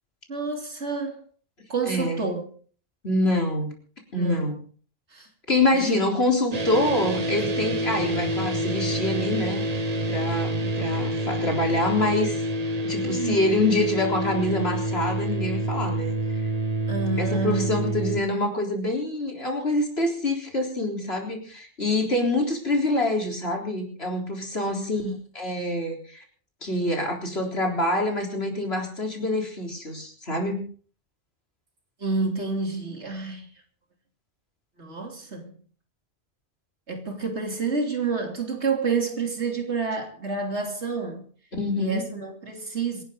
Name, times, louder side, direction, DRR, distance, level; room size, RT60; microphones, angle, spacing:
voice 1, 0.3-1.2 1.7-2.4 4.1-4.6 5.1-5.3 5.7-6.0 13.0-13.5 16.9-17.8 24.6-25.1 32.0-33.5 34.8-35.6 36.9-41.2 41.8-43.0, right 4 dB, 80° right, 3.4 m, -29 dB
voice 2, 1.9-2.2 3.0-3.7 4.1-4.6 5.5-9.6 10.1-12.4 12.8-16.2 17.2-25.1 25.4-26.2 26.6-30.7 41.6-42.1, left 1 dB, 65° left, 4.2 m, -26 dB
sound 1, 6.5-18.2, right 1 dB, 40° right, 1.1 m, -27 dB
26.5 x 11.5 x 3.9 m
omnidirectional pair, 1.1 m